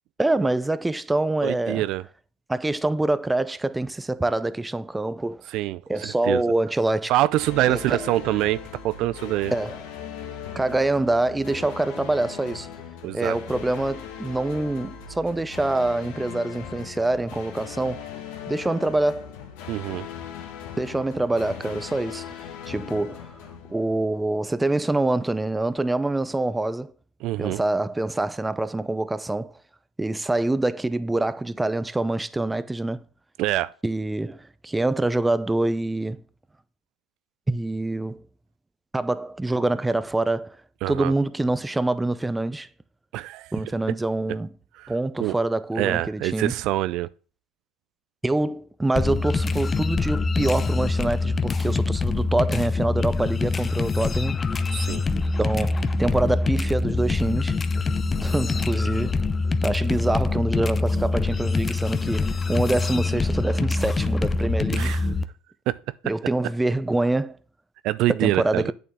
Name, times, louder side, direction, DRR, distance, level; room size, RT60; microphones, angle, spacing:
voice 1, 0.2-1.8 2.5-5.4 5.9-7.1 7.7-8.0 9.5-9.8 10.6-12.7 13.1-18.1 18.5-19.3 20.8-22.3 22.7-23.3 23.7-26.9 27.4-29.5 30.0-33.0 33.8-36.2 37.5-38.2 38.9-40.6 40.9-42.7 43.5-44.5 44.9-46.5 48.2-54.4 55.4-57.6 58.2-59.2 59.6-64.9 66.0-67.4 68.2-68.7, right 2 dB, 10° right, 0.6 m, -25 dB
voice 2, 1.4-2.0 5.5-6.4 7.1-9.5 13.0-13.4 19.7-20.1 27.2-27.6 33.4-33.7 40.8-41.1 43.1-43.5 44.8-44.9 45.2-45.3 45.8-47.1 54.7-55.0 64.7-65.1 65.7-65.8 67.8-68.7, right 16 dB, 60° right, 0.3 m, -25 dB
sound 1, 7.4-24.4, left 8 dB, 75° left, 1.9 m, -39 dB
sound 2, 48.9-65.2, left 3 dB, 25° left, 0.7 m, -24 dB
8.4 x 7.0 x 3.6 m
hypercardioid pair, 90°, 0 cm